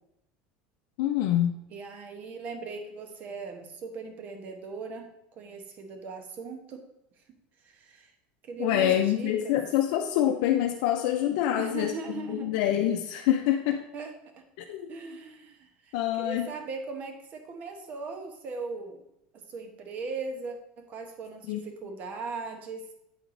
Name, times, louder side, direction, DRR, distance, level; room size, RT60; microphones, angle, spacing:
voice 1, 1.0-1.6 8.6-11.9 12.3-13.8 14.6-14.9 15.9-16.5 21.5-21.6, left 11 dB, 70° left, 4 dB, 0.5 m, -26 dB
voice 2, 1.7-5.1 5.4-6.8 7.6-8.1 8.5-9.6 11.6-12.5 13.9-14.4 14.9-19.0 19.5-22.8, right 4 dB, 40° right, 4 dB, 1.1 m, -39 dB
8.7 x 4.7 x 3.8 m, 0.81 s
supercardioid pair, 145°, 4 cm